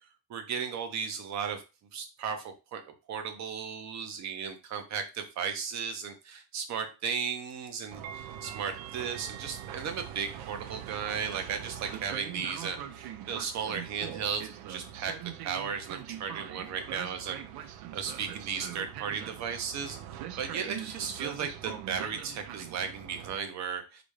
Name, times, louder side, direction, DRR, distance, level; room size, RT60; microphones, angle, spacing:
voice 1, 0.3-1.6 1.9-2.8 3.1-15.1 15.4-20.0 20.4-24.0, right 6 dB, 50° right, 6 dB, 0.8 m, -35 dB
Train, 7.9-23.4, right 10 dB, 85° right, 0.5 m, -42 dB
3.9 x 2.3 x 3.2 m, 0.29 s
cardioid pair, 160°, 35 cm